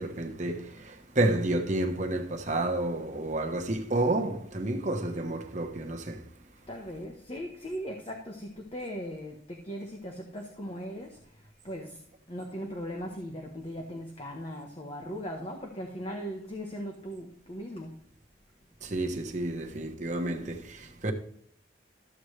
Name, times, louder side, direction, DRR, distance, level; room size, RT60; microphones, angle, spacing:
voice 1, 0.0-6.3 18.8-21.1, right 2 dB, 40° right, 1.1 m, -30 dB
voice 2, 6.7-17.9, equal, 30° left, 1.1 m, -39 dB
13.5 x 7.9 x 3.3 m
head